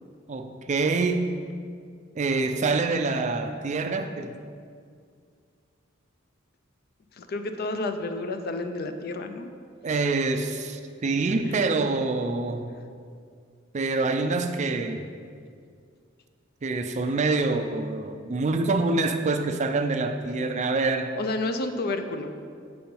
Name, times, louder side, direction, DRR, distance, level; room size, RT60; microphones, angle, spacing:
voice 1, 0.3-1.4 2.2-4.4 9.8-12.7 13.7-15.1 16.6-21.1, right 3 dB, 35° right, 7 dB, 0.4 m, -26 dB
voice 2, 7.2-9.5 11.5-11.6 21.2-22.3, left 2 dB, 50° left, 8 dB, 0.5 m, -30 dB
7.6 x 4.4 x 5.4 m, 2.2 s
head